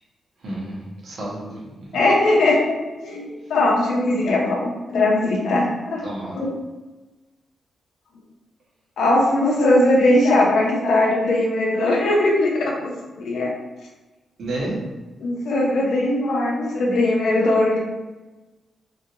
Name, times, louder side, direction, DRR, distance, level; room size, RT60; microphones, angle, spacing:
voice 1, 0.4-1.6 6.0-6.4 14.4-14.9, right 1 dB, 70° right, -6 dB, 1.4 m, -30 dB
voice 2, 1.9-2.7 3.0-6.0 6.3-6.5 9.0-12.9 13.2-13.5 15.2-17.8, left 1 dB, 85° left, -2 dB, 0.8 m, -19 dB
3.7 x 2.8 x 2.6 m, 1.2 s
cardioid pair, 85°, 0 cm